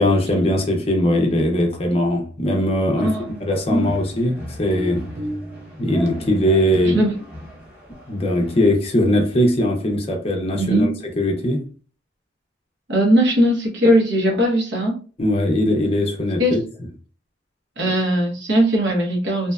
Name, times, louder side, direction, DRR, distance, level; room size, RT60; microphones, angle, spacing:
voice 1, 0.0-3.1 3.4-5.1 5.8-7.0 8.1-11.6 15.2-16.6 17.8-17.9, left 1 dB, 30° left, 0.5 m, -20 dB
sound 1, 3.0-8.8, right 1 dB, 10° right, 0.7 m, -39 dB
voice 2, 3.0-3.3 3.7-4.0 6.8-7.1 10.5-10.9 12.9-15.0 16.4-16.6 17.8-19.5, equal, 70° right, 0.8 m, -19 dB
sound 2, 4.1-7.2, equal, 35° right, 0.4 m, -35 dB
2.7 x 2.2 x 2.3 m
head